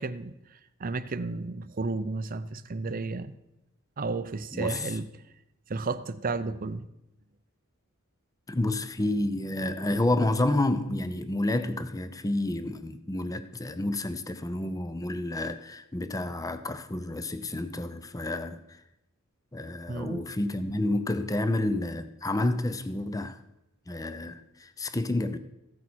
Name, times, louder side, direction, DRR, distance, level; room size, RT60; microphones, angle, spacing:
voice 1, 0.0-3.4 4.0-5.1 5.7-6.9 19.9-20.3, right 3 dB, 40° right, 0.6 m, -33 dB
voice 2, 8.5-18.6 19.5-23.4 23.9-25.4, left 1 dB, 15° left, 0.6 m, -29 dB
15.0 x 8.7 x 4.4 m
head